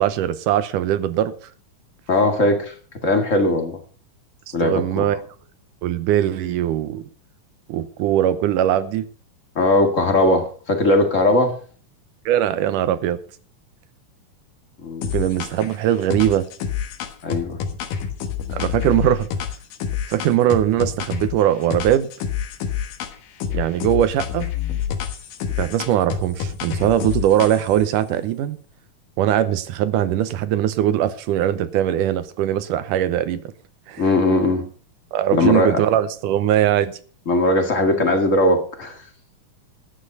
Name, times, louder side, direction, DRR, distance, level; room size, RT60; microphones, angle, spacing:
voice 1, 0.0-1.3 4.5-5.2 5.8-7.1 7.7-9.1 12.3-13.2 15.1-16.5 18.5-19.3 20.1-22.1 23.5-24.5 25.6-28.6 29.2-33.5 33.9-34.0 35.1-37.0, right 11 dB, 80° right, 2.4 m, -20 dB
voice 2, 2.1-2.7 3.0-3.8 4.5-5.0 9.6-11.6 14.8-15.1 17.2-17.6 34.0-34.6 35.3-35.8 37.3-39.0, left 2 dB, 30° left, 1.8 m, -19 dB
sound 1, 15.0-15.7 16.1-21.4 21.7-23.1 23.4-27.8, left 8 dB, 85° left, 3.0 m, -28 dB
12.5 x 9.9 x 5.4 m
omnidirectional pair, 3.8 m